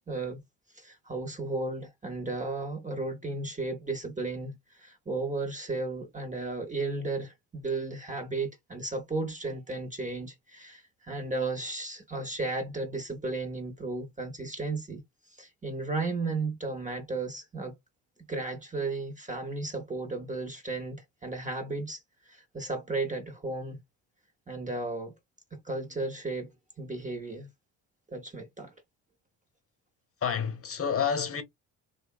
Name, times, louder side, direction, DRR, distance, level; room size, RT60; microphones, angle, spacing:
voice 1, 0.1-0.4 0.7-15.0 15.3-17.8 18.3-23.8 24.5-25.1 25.5-26.5 26.8-27.5 28.1-28.7, right 3 dB, 20° right, 0.7 m, -34 dB
voice 2, 30.2-31.4, left 7 dB, 35° left, 1.0 m, -29 dB
2.7 x 2.2 x 2.2 m
hypercardioid pair, 60°, 42 cm